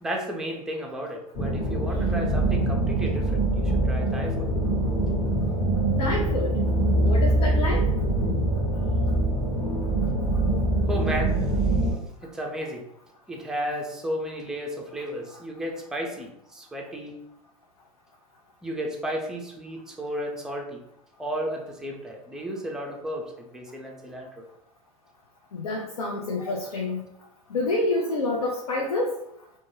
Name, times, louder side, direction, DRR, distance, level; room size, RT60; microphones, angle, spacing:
voice 1, 0.0-4.5 10.9-11.4 12.2-12.8 13.3-17.1 18.6-20.8 21.2-24.5, equal, 5° right, 0 dB, 0.4 m, -33 dB
sound 1, 1.3-11.9, right 1 dB, 45° left, 0.9 m, -24 dB
voice 2, 6.0-6.5 7.0-7.8 25.5-27.0 27.5-29.1, left 2 dB, 90° left, 0 dB, 0.4 m, -28 dB
2.1 x 2.1 x 2.9 m, 0.79 s
hypercardioid pair, 85°, 18 cm